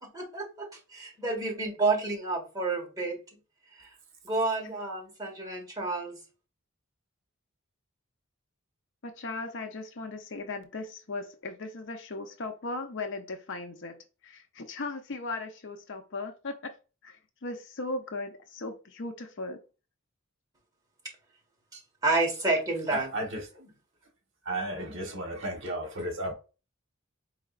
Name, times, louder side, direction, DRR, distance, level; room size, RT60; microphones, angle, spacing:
voice 1, 0.0-3.2 3.8-3.9 4.2-6.2 21.7-23.1, right 3 dB, 20° right, 1.4 m, -30 dB
voice 2, 9.0-14.0 14.2-16.7 17.0-19.6, left 3 dB, 60° left, 0.7 m, -37 dB
voice 3, 22.9-23.6 24.4-26.3, right 1 dB, 60° right, 1.2 m, -34 dB
4.7 x 3.2 x 2.4 m
head